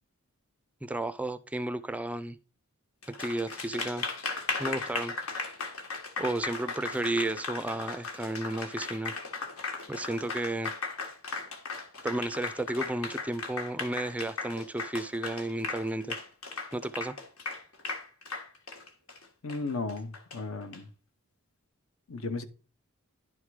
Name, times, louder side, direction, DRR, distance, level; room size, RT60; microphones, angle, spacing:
voice 1, 0.8-2.4 3.2-4.1 4.6-5.6 6.2-9.1 9.9-10.7 12.0-16.2 16.7-17.1, right 1 dB, 5° right, 0.3 m, -33 dB
Applause, 3.0-20.8, left 4 dB, 85° left, 1.6 m, -37 dB
voice 2, 19.4-20.9 22.1-22.4, left 3 dB, 70° left, 0.9 m, -35 dB
11.0 x 3.7 x 4.7 m
head